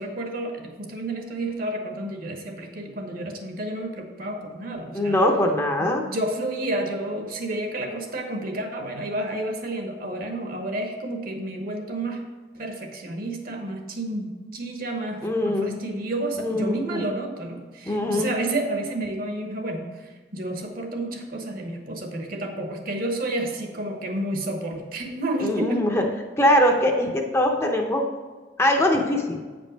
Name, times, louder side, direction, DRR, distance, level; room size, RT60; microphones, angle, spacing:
voice 1, 0.0-5.2 5.8-12.2 12.5-25.8, right 1 dB, 50° right, 4 dB, 1.1 m, -30 dB
voice 2, 4.9-6.0 15.2-15.8 16.4-17.0 17.9-18.3 25.4-26.0 26.4-28.1 28.6-29.4, left 1 dB, 15° left, 2 dB, 0.7 m, -22 dB
8.3 x 5.3 x 5.2 m, 1.4 s
head